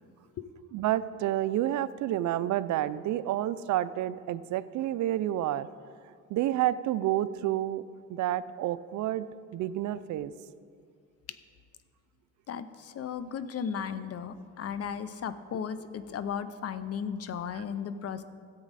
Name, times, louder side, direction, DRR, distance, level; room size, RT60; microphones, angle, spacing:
voice 1, 0.7-5.7 6.3-7.8 8.1-9.3 9.5-10.3, right 13 dB, 75° right, 16 dB, 0.4 m, -29 dB
voice 2, 12.5-18.2, left 7 dB, 50° left, 12 dB, 0.7 m, -35 dB
13.5 x 8.4 x 4.1 m, 2.2 s
cardioid pair, 90°, 30 cm